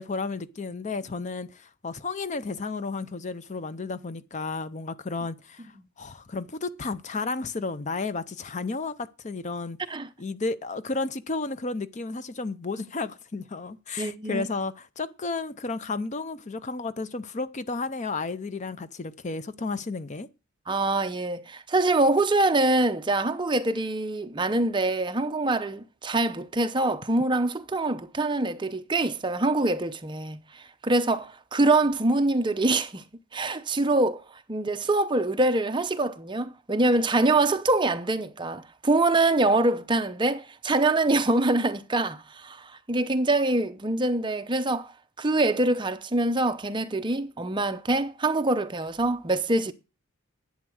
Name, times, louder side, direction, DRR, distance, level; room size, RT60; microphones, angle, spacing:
voice 1, 0.0-9.8 10.2-20.3, left 3 dB, 35° left, 0.6 m, -32 dB
voice 2, 14.0-14.5 20.7-33.0 33.3-34.2 34.5-49.7, right 2 dB, 20° right, 0.7 m, -24 dB
11.0 x 8.4 x 6.3 m
head